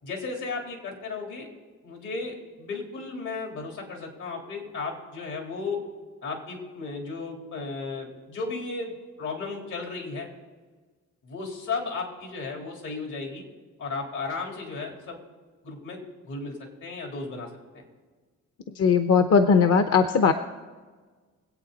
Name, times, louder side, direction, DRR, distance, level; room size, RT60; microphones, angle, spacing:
voice 1, 0.0-1.5 1.8-5.8 6.2-10.3 11.2-13.4 13.8-15.2 15.6-17.5 17.7-17.8, left 4 dB, 80° left, 1 dB, 3.7 m, -34 dB
voice 2, 18.8-20.3, left 6 dB, 55° left, 8 dB, 0.8 m, -19 dB
23.0 x 8.5 x 4.1 m, 1.4 s
cardioid pair, 90°, 30 cm